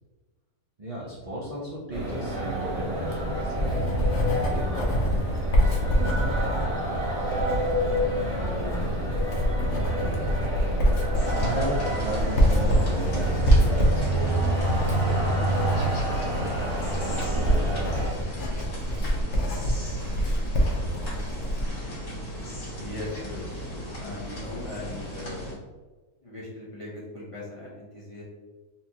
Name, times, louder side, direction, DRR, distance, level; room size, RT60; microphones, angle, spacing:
voice 1, 0.8-4.1 4.5-5.2 5.5-7.1 8.4-10.7 11.4-14.5 15.0-16.3 17.0-18.4, right 1 dB, 75° right, -6 dB, 0.3 m, -36 dB
sound 1, 1.9-18.1, right 1 dB, 50° right, 1.5 m, -28 dB
Writing, 2.9-21.7, equal, 60° left, 0.9 m, -26 dB
sound 2, 11.1-25.5, equal, 85° left, 1.7 m, -37 dB
voice 2, 22.8-23.4 24.0-25.4 26.2-28.2, left 2 dB, 35° left, -8 dB, 0.5 m, -39 dB
4.1 x 2.3 x 2.7 m, 1.3 s
omnidirectional pair, 1.5 m